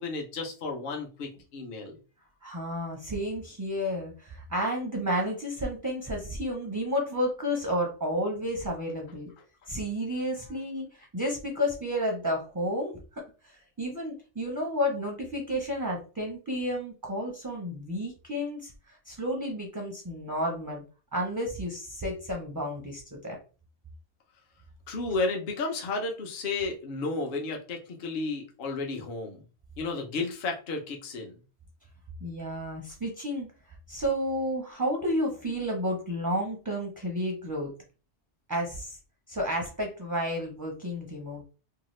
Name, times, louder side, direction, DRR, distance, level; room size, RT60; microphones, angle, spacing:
voice 1, 0.0-2.0 24.9-29.4 29.8-31.3, left 3 dB, 55° left, 2 dB, 0.8 m, -32 dB
voice 2, 2.4-9.3 9.7-20.8 21.1-23.4 32.2-37.7 38.5-39.0 39.3-41.4, equal, 25° right, 0 dB, 0.4 m, -31 dB
2.8 x 2.2 x 3.0 m, 0.35 s
omnidirectional pair, 1.2 m